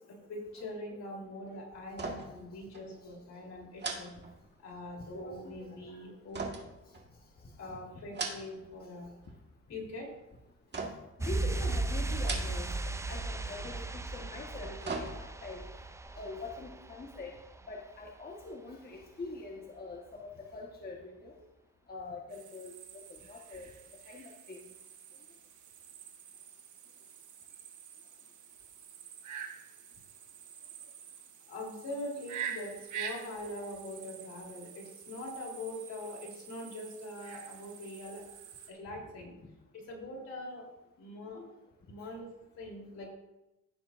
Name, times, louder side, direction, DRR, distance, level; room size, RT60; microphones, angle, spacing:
voice 1, 0.3-4.1 4.6-6.5 7.6-9.1 9.7-10.1 31.5-38.2 38.7-39.3 39.7-40.7 41.0-41.4 41.9-42.3 42.6-43.1, left 1 dB, 60° left, -1 dB, 3.6 m, -43 dB
sound 1, 1.9-2.5 2.7-2.9 3.8-4.9 6.3-7.5 8.0-8.8 9.1-9.6 10.7-11.2 12.1-12.9 13.2-13.3 14.4-15.6 16.0-16.1, right 3 dB, 35° right, 1.7 m, -40 dB
voice 2, 5.2-5.8 7.6-7.8 11.2-12.7 13.1-15.6 16.1-17.4 17.7-21.3 21.9-23.7 24.1-24.6 41.4-41.5, left 3 dB, 30° left, -1 dB, 1.4 m, -44 dB
sound 2, 11.2-17.7 18.0-18.1, right 2 dB, 10° right, 0.5 m, -36 dB
sound 3, 22.3-38.7, right 8 dB, 75° right, 1.3 m, -47 dB
16.0 x 7.0 x 2.6 m, 0.94 s
cardioid pair, 90°, 30 cm